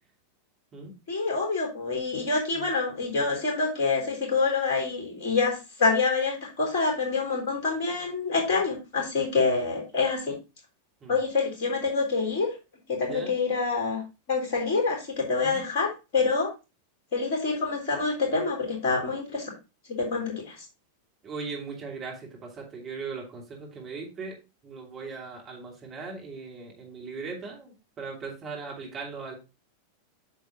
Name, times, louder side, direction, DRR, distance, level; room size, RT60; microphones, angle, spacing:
voice 1, 1.1-10.3 11.1-12.5 12.9-14.0 14.3-16.5 17.1-19.5 20.0-20.6, left 4 dB, 45° left, 1 dB, 3.6 m, -26 dB
voice 2, 13.0-13.3 15.4-15.6 21.2-24.3 24.6-29.3, right 4 dB, 25° right, -1 dB, 2.7 m, -38 dB
8.4 x 6.6 x 2.8 m, 0.28 s
figure-of-eight pair, 90°, 0 cm